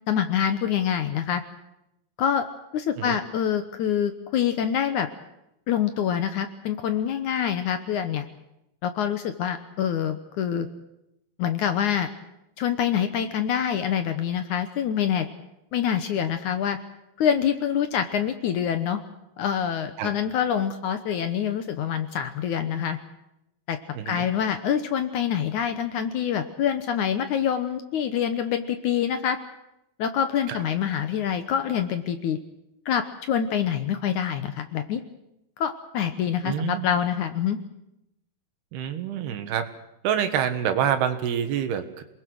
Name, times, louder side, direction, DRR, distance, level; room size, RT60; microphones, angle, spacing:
voice 1, 0.1-1.4 2.2-2.5 2.7-5.1 5.7-8.3 8.8-10.7 11.4-12.1 12.6-15.3 15.7-16.8 17.2-19.0 19.4-23.0 23.7-23.8 24.1-29.4 30.0-32.4 32.9-35.0 35.6-37.6, left 8 dB, 65° left, 9 dB, 2.0 m, -26 dB
voice 2, 24.0-24.3 30.5-30.6 36.4-36.9 38.7-39.6 40.0-42.0, right 9 dB, 85° right, 8 dB, 3.5 m, -26 dB
27.5 x 20.5 x 6.3 m, 0.86 s
omnidirectional pair, 4.5 m